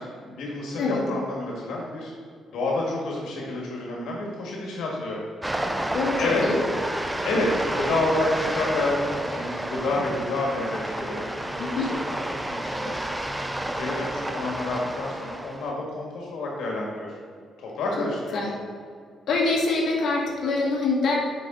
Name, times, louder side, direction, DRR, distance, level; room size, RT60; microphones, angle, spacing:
voice 1, 0.0-2.1 2.5-5.2 6.2-6.4 7.2-13.0 13.8-17.1 17.6-18.4, left 2 dB, 80° left, -2 dB, 1.7 m, -29 dB
sound 1, 5.4-15.7, right 1 dB, 5° right, 0.4 m, -30 dB
voice 2, 5.9-6.6 11.6-11.9 18.0-18.1 18.3-18.5 19.3-21.1, left 3 dB, 60° left, -2 dB, 1.8 m, -24 dB
8.9 x 5.2 x 3.9 m, 2.2 s
cardioid pair, 150°, 0 cm